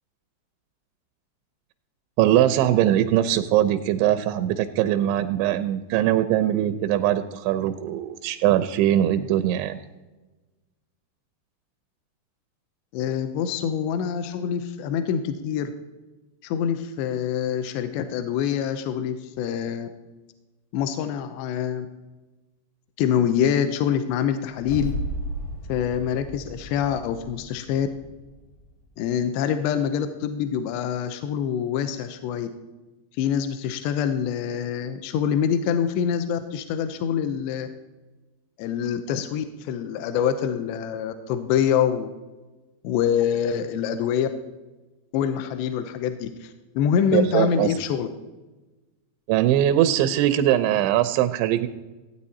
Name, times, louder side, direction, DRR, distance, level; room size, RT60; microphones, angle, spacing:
voice 1, 2.2-9.8 47.1-47.7 49.3-51.7, right 12 dB, 85° right, 10 dB, 2.9 m, -21 dB
voice 2, 12.9-15.7 16.4-19.9 20.7-21.9 23.0-24.9 25.7-27.9 29.0-32.5 33.2-37.7 38.6-42.1 42.8-44.3 45.1-48.1, left 8 dB, 80° left, 9 dB, 2.8 m, -25 dB
sound 1, 24.6-28.9, equal, 35° left, 1.3 m, -34 dB
16.0 x 9.1 x 4.2 m, 1.2 s
omnidirectional pair, 5.2 m